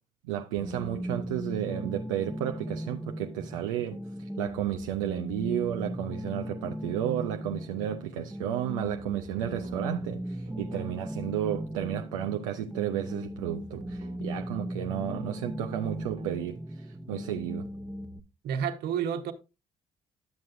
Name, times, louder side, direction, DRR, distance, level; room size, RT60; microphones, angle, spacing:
voice 1, 0.2-17.7, right 11 dB, 90° right, 0.4 m, -33 dB
sound 1, 0.6-18.2, equal, ahead, 0.9 m, -37 dB
sound 2, 9.4-9.9 10.5-10.9 11.5-12.1 13.7-14.3 14.8-15.3 15.9-16.4, right 6 dB, 35° right, 0.8 m, -47 dB
voice 2, 18.4-19.3, right 8 dB, 75° right, 1.0 m, -30 dB
11.0 x 7.6 x 2.5 m
hypercardioid pair, 50°, 17 cm